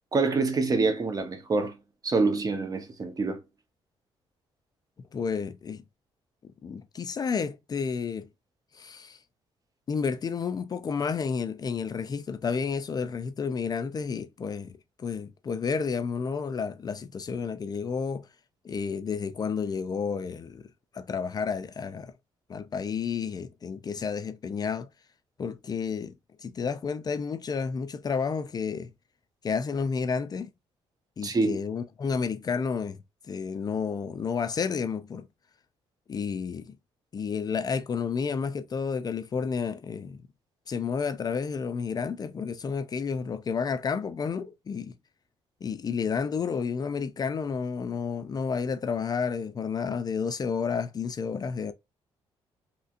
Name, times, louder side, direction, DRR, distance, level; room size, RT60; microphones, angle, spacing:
voice 1, 0.1-1.7 2.0-3.4 31.2-31.6, right 3 dB, 35° right, 0.9 m, -26 dB
voice 2, 5.0-5.8 6.6-8.3 8.7-9.2 9.9-18.3 18.6-20.6 20.9-22.1 22.5-24.9 25.4-26.1 26.4-28.9 29.4-30.5 31.2-33.0 33.3-35.3 36.1-36.8 37.1-40.2 40.7-44.9 45.6-51.7, left 6 dB, 40° left, 0.4 m, -31 dB
3.2 x 2.9 x 2.4 m
cardioid pair, 90°, 11 cm